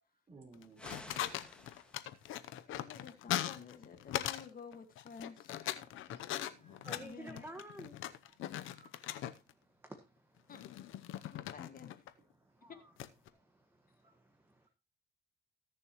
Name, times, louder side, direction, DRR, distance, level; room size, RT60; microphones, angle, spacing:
voice 1, 0.3-0.9 6.6-6.9 8.7-8.9, right 4 dB, 30° right, 2 dB, 4.3 m, -57 dB
sound 1, 0.5-4.5 4.7-9.5 10.5-12.1 13.0-13.3, left 12 dB, 85° left, 0.8 m, -40 dB
sound 2, 0.8-2.4, left 1 dB, 5° left, 1.8 m, -52 dB
voice 2, 2.7-5.6 7.0-7.5 10.5-10.6 11.2-11.9, left 5 dB, 45° left, 7 dB, 1.8 m, -51 dB
voice 3, 5.7-7.9 8.9-9.0 9.4-10.5 11.1-11.4 12.4-12.8 13.2-14.7, right 1 dB, 10° right, 4 dB, 1.6 m, -54 dB
19.5 x 7.0 x 3.1 m, 0.29 s
cardioid pair, 90°, 20 cm